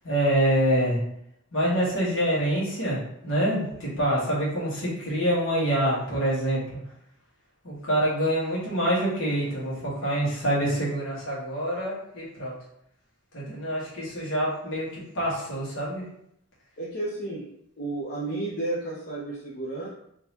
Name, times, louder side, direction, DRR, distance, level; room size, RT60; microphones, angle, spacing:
voice 1, 0.0-1.0 1.5-3.0 3.2-6.8 7.6-12.5 13.3-16.0, right 1 dB, 65° left, -6 dB, 1.5 m, -26 dB
voice 2, 16.8-17.4 17.8-19.9, right 2 dB, 45° left, -6 dB, 0.7 m, -32 dB
3.7 x 2.8 x 2.9 m, 0.74 s
head